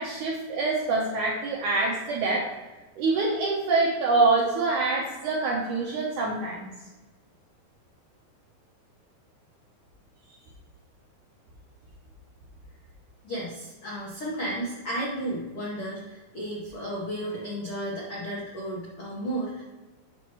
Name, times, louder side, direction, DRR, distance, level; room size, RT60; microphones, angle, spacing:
voice 1, 0.0-2.5 3.0-6.7, right 3 dB, 80° right, -2 dB, 1.8 m, -25 dB
voice 2, 13.2-19.8, right 1 dB, 85° left, -5 dB, 1.2 m, -33 dB
7.9 x 6.1 x 3.0 m, 1.2 s
omnidirectional pair, 4.6 m